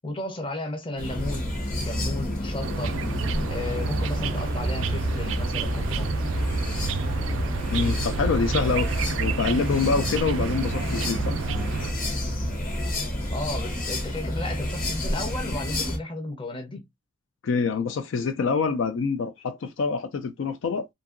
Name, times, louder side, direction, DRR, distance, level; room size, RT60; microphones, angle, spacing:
voice 1, 0.0-1.6 1.8-3.0 3.5-6.1 13.3-16.8, left 2 dB, 25° left, 0.7 m, -34 dB
sound 1, 1.0-16.0, equal, 45° left, 1.0 m, -29 dB
sound 2, 2.6-11.9, right 5 dB, 70° right, 0.4 m, -30 dB
voice 2, 7.7-8.9 9.2-11.3 17.4-20.9, left 5 dB, 65° left, 0.4 m, -26 dB
2.7 x 2.6 x 2.4 m
head